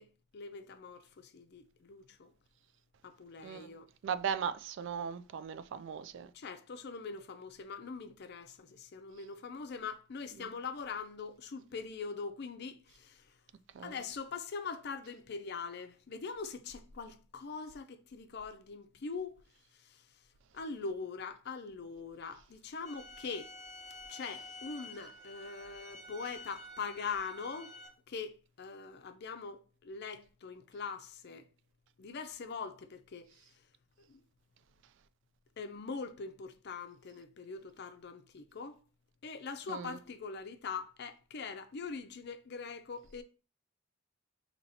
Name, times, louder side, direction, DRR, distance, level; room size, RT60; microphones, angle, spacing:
voice 1, 0.0-2.3 3.0-3.9 6.3-13.4 13.8-19.4 19.7-20.2 20.5-23.5 24.1-27.8 28.1-31.5 32.0-33.6 34.1-34.2 35.6-38.8 39.2-43.2, left 5 dB, 55° left, 0.5 m, -42 dB
voice 2, 4.0-6.3 10.4-10.5 13.7-14.0 39.7-40.0, right 7 dB, 60° right, 0.3 m, -38 dB
sound 1, 22.8-27.9, left 1 dB, 15° right, 2.1 m, -50 dB
5.6 x 2.9 x 2.7 m
head